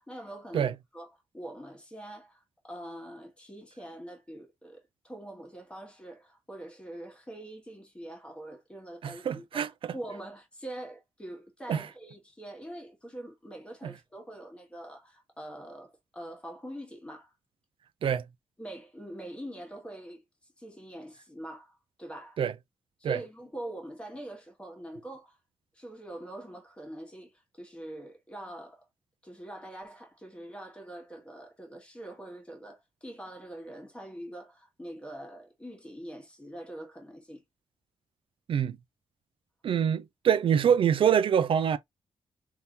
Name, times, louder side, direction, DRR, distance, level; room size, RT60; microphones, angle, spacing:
voice 1, 0.0-17.3 18.6-20.2 20.6-22.4 23.0-25.4 25.7-28.8 29.2-37.4, right 1 dB, 10° left, 1.3 m, -44 dB
voice 2, 9.0-9.9 11.7-11.9 13.8-13.9 18.0-18.2 22.4-22.5 23.0-23.2 38.5-38.8 39.6-41.8, right 8 dB, 55° right, 0.4 m, -25 dB
3.6 x 2.7 x 2.7 m
wide cardioid pair, 160°, 11 cm